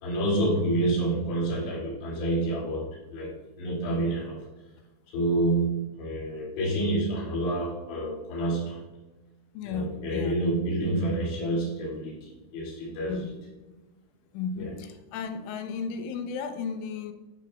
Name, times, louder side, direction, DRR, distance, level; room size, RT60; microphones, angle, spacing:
voice 1, 0.0-4.4 5.1-8.9 9.7-13.3 14.6-14.7, right 1 dB, 65° left, -7 dB, 4.5 m, -28 dB
voice 2, 9.5-10.4 13.1-13.3 13.7-13.8 14.3-17.1, left 5 dB, 80° left, 7 dB, 3.2 m, -34 dB
13.0 x 6.2 x 2.3 m, 1.1 s
omnidirectional pair, 5.7 m